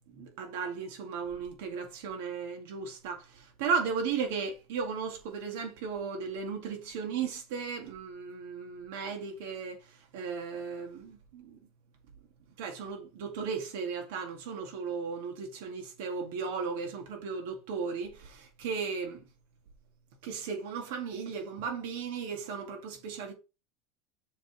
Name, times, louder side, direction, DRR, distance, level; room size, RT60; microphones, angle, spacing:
voice 1, 0.1-11.6 12.6-19.2 20.2-23.3, right 5 dB, 80° right, 2.1 m, -36 dB
7.0 x 3.9 x 4.8 m
supercardioid pair, 155°, 0 cm